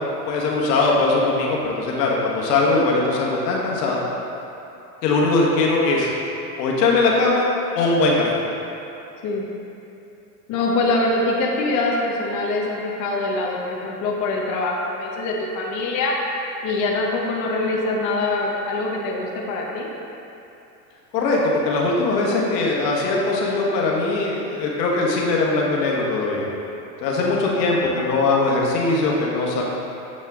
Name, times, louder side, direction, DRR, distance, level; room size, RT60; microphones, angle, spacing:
voice 1, 0.3-4.0 5.0-6.1 6.6-7.5 7.7-8.2 21.1-26.5 27.0-29.6, left 3 dB, 75° left, -2 dB, 1.3 m, -20 dB
voice 2, 10.5-16.1 16.6-19.9, left 2 dB, 35° left, -2 dB, 0.8 m, -24 dB
7.4 x 4.3 x 3.6 m, 2.8 s
supercardioid pair, 125°, 49 cm